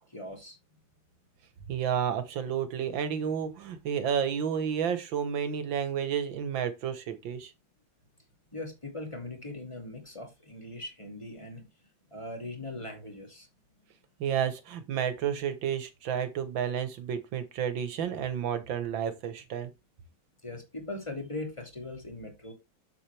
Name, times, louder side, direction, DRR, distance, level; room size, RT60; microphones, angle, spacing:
voice 1, 0.1-0.6 8.5-11.7 12.1-13.5 20.4-22.5, left 2 dB, 15° left, 2.6 m, -40 dB
voice 2, 1.7-7.5 14.2-19.7, right 8 dB, 80° right, 2.0 m, -31 dB
7.8 x 7.3 x 3.4 m
omnidirectional pair, 2.1 m